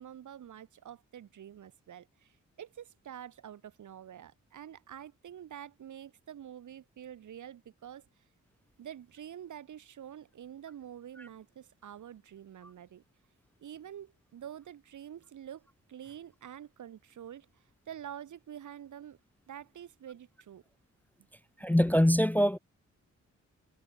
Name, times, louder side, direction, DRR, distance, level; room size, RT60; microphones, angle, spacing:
voice 1, 0.0-8.2 8.8-13.0 13.6-19.2 19.5-20.6, right 10 dB, 80° right, 1.5 m, -47 dB
voice 2, 21.6-22.6, equal, 5° left, 0.4 m, -23 dB
cardioid pair, 80°, 30 cm